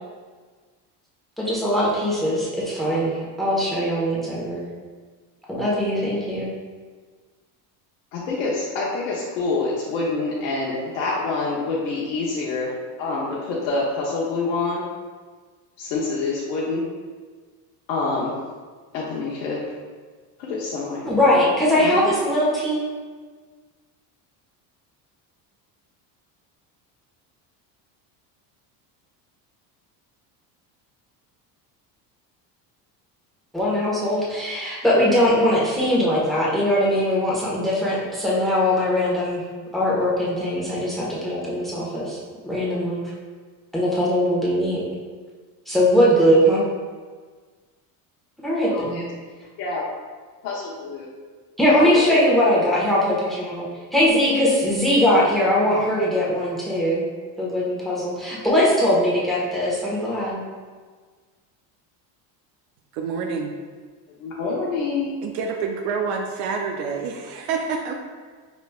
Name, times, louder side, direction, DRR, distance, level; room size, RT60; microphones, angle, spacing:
voice 1, 1.4-4.6 5.5-6.5 21.0-22.8 33.5-39.4 39.7-42.2 42.4-43.0 43.7-44.8 45.7-46.6 48.4-49.0 51.6-57.0 57.4-60.4, equal, ahead, -6 dB, 1.3 m, -21 dB
voice 2, 8.1-12.7 13.0-14.8 15.8-16.9 17.9-18.3 18.9-19.6 20.4-21.2 21.8-22.1 48.6-49.0 49.6-49.8 50.4-51.1 51.7-51.9 64.2-65.1, left 3 dB, 80° left, -5 dB, 0.9 m, -26 dB
voice 3, 62.9-63.5 65.2-67.9, right 5 dB, 75° right, 2 dB, 0.6 m, -27 dB
5.0 x 3.1 x 2.4 m, 1.5 s
supercardioid pair, 85°, 50 cm